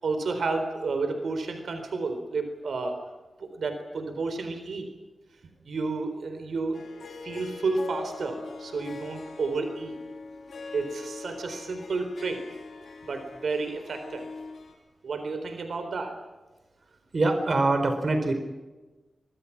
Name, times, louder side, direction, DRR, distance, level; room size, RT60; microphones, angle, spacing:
voice 1, 0.0-3.0 3.4-4.9 5.6-6.8 7.2-9.9 10.7-12.4 13.0-14.3 15.0-16.2, right 3 dB, 85° right, 7 dB, 4.0 m, -31 dB
Harp, 6.7-14.7, left 4 dB, 80° left, 4.1 m, -42 dB
voice 2, 17.1-18.3, right 2 dB, 45° right, 7 dB, 4.4 m, -24 dB
24.5 x 22.5 x 6.0 m, 1.1 s
wide cardioid pair, 110°, 0 cm